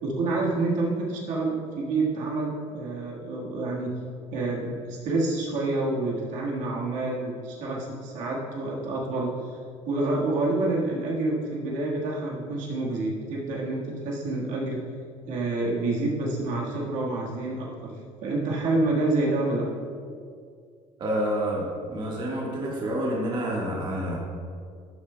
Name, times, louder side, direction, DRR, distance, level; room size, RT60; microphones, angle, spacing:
voice 1, 0.0-3.9 4.3-9.5 9.8-14.8 15.3-17.9 18.2-19.6, right 2 dB, 65° right, -3 dB, 1.6 m, -28 dB
voice 2, 21.0-24.2, right 1 dB, 35° right, -4 dB, 1.5 m, -28 dB
12.5 x 7.2 x 2.2 m, 2.2 s
cardioid pair, 150°, 14 cm